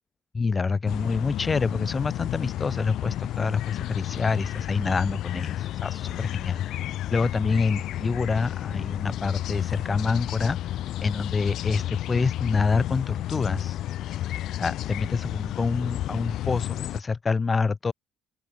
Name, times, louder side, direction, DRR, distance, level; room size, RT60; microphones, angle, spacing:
voice 1, 0.3-6.6 7.1-13.8 14.5-17.9, left 4 dB, 20° left, 0.7 m, -27 dB
sound 1, 0.9-17.0, left 13 dB, 60° left, 1.0 m, -31 dB
open air
cardioid pair, 130°, 0 cm